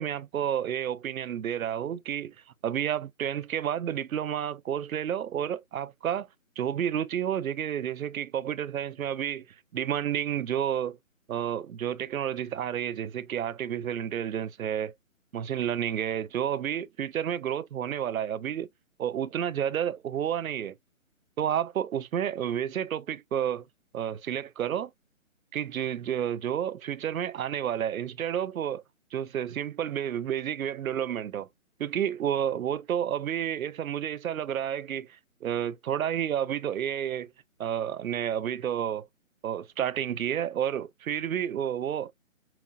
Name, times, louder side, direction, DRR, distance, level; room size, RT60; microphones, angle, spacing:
voice 1, 0.0-2.3 2.6-6.3 6.6-9.5 9.7-11.0 11.3-14.9 15.3-18.7 19.0-20.8 21.4-23.7 23.9-24.9 25.5-28.8 29.1-31.5 31.8-37.3 37.6-39.1 39.4-42.1, right 9 dB, 80° right, 0.5 m, -30 dB
5.8 x 2.3 x 2.5 m
figure-of-eight pair, 155°, 41 cm